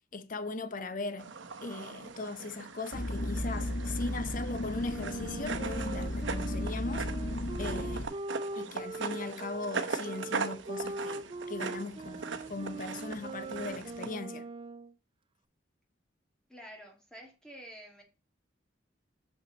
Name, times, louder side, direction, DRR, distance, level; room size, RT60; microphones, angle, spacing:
voice 1, 0.1-1.3 1.6-7.1 7.6-8.1 8.5-14.5, left 3 dB, 45° left, 0.8 m, -39 dB
sound 1, 1.2-14.1, right 5 dB, 85° right, 0.9 m, -40 dB
sound 2, 2.9-8.1, left 1 dB, 70° left, 1.5 m, -35 dB
Wind instrument woodwind instrument, 4.9-14.9, right 3 dB, 30° right, 0.4 m, -41 dB
voice 2, 16.5-18.0, equal, 5° left, 2.3 m, -49 dB
6.6 x 5.8 x 4.0 m
head